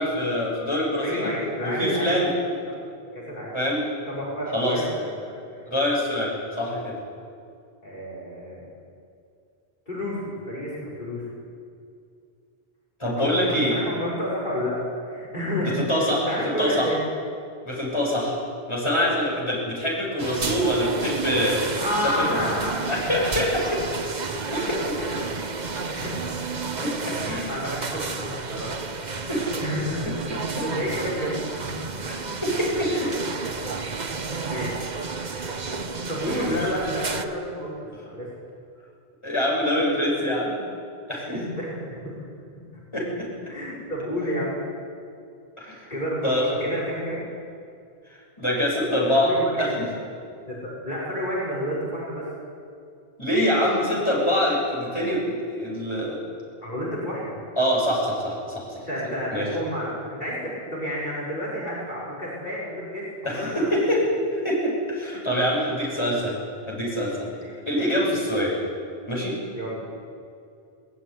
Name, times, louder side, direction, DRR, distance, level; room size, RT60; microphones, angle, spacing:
voice 1, 0.0-1.3 1.6-2.3 3.5-3.8 4.5-4.8 5.7-7.0 13.0-13.8 15.6-16.9 17.6-18.4 18.7-21.6 22.0-22.4 22.9-23.9 24.5-24.8 25.1-25.2 26.8-27.5 29.3-29.5 30.1-30.2 32.1-32.9 36.3-36.6 39.2-40.6 41.1-41.4 42.9-43.3 45.6-45.9 46.2-46.6 48.4-49.7 53.2-56.2 57.6-58.8 59.3-59.5 63.2-64.1 64.4-66.4 66.7-67.3 67.7-68.5 69.1-69.4, equal, 25° left, -4 dB, 6.9 m, -25 dB
voice 2, 1.0-2.2 2.7-2.8 3.1-3.6 4.1-5.6 7.8-8.7 9.9-11.2 13.2-14.8 15.1-17.1 18.9-19.1 21.8-23.0 24.4-24.7 25.0-25.6 25.9-26.3 27.1-28.7 29.6-30.3 30.6-31.7 32.9-33.1 34.4-34.7 36.1-38.3 41.3-42.1 43.5-44.6 45.9-47.2 49.2-49.9 50.5-52.3 56.6-57.4 58.9-64.1 67.4-67.5 69.5-69.8, equal, 50° left, -6 dB, 6.0 m, -30 dB
sound 1, 20.2-37.2, right 4 dB, 45° right, 1.1 m, -31 dB
20.0 x 19.5 x 9.8 m, 2.4 s
omnidirectional pair, 1.1 m